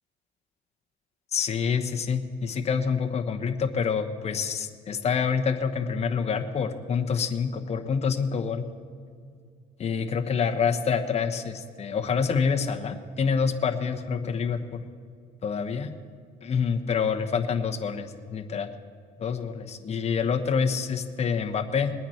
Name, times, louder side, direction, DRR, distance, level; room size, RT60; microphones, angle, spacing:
voice 1, 1.3-8.6 9.8-14.8 15.4-15.9 16.4-18.7 19.2-21.9, left 6 dB, 40° left, 5 dB, 1.1 m, -27 dB
21.0 x 9.2 x 4.4 m, 2.2 s
cardioid pair, 110°, 17 cm